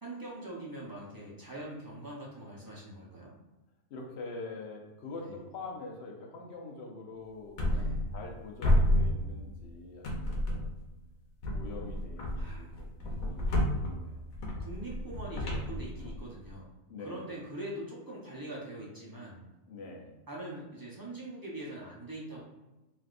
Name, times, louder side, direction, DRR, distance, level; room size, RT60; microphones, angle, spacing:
voice 1, 0.0-3.3 5.2-5.3 7.7-8.0 12.4-12.7 14.6-16.7 17.0-19.4 20.3-22.4, right 1 dB, 30° right, -5 dB, 0.4 m, -43 dB
voice 2, 3.9-7.6 8.1-10.8 11.5-14.2 16.9-17.3 19.7-20.1, left 3 dB, 60° left, 0 dB, 0.8 m, -44 dB
sound 1, 7.6-8.3 8.6-9.7 10.0-10.9 11.4-16.5, left 1 dB, 90° left, 1.1 m, -31 dB
3.4 x 2.4 x 2.4 m, 1.1 s
omnidirectional pair, 1.4 m